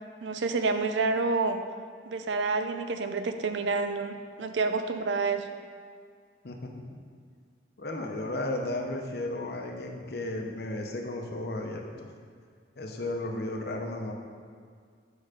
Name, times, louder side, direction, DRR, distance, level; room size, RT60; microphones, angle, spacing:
voice 1, 0.2-1.6 2.1-5.5, right 3 dB, 85° right, 8 dB, 0.5 m, -28 dB
voice 2, 6.4-7.0 7.8-12.1 12.8-14.1, left 1 dB, 60° left, 2 dB, 0.8 m, -34 dB
6.6 x 4.7 x 5.0 m, 2.1 s
head